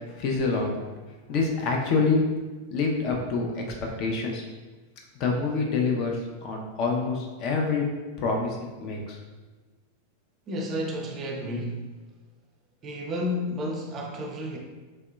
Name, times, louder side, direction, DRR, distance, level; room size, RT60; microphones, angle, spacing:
voice 1, 0.1-0.7 1.3-2.3 2.7-3.6 4.0-4.4 5.2-7.9 8.2-9.2, left 4 dB, 40° left, 1 dB, 0.5 m, -26 dB
voice 2, 10.5-11.9 12.8-14.6, left 1 dB, 30° right, 1 dB, 0.4 m, -31 dB
3.1 x 2.7 x 2.2 m, 1.3 s
figure-of-eight pair, 90°, 0 cm